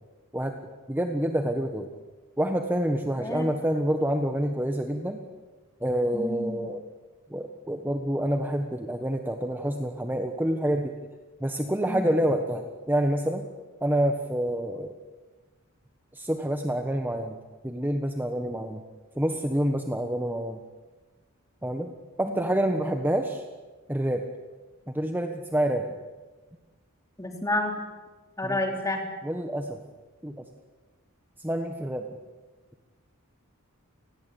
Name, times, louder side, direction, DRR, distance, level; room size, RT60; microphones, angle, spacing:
voice 1, 0.9-1.9 2.4-5.2 5.8-6.8 7.3-10.9 11.4-13.4 13.8-15.0 16.1-17.4 17.6-18.8 19.2-20.6 21.6-21.9 22.2-23.4 23.9-24.2 24.9-25.8 28.4-28.6 29.2-29.8 30.2-30.4 31.4-32.0, right 1 dB, 10° right, 5 dB, 1.4 m, -27 dB
voice 2, 6.1-6.6 11.9-12.1 22.3-22.7 27.2-27.7 28.4-29.0, left 2 dB, 15° left, 3 dB, 3.9 m, -30 dB
29.5 x 20.5 x 8.7 m, 1.3 s
head